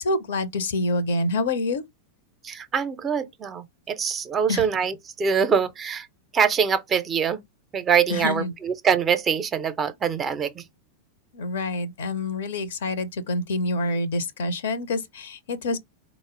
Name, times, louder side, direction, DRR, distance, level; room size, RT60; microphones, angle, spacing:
voice 1, 0.0-1.8 4.5-4.6 8.1-8.5 11.3-15.8, left 2 dB, 60° left, 0.5 m, -27 dB
voice 2, 2.4-6.1 6.3-7.4 7.7-10.6, right 7 dB, 25° right, 0.5 m, -24 dB
3.8 x 2.0 x 3.7 m
figure-of-eight pair, 90°, 0 cm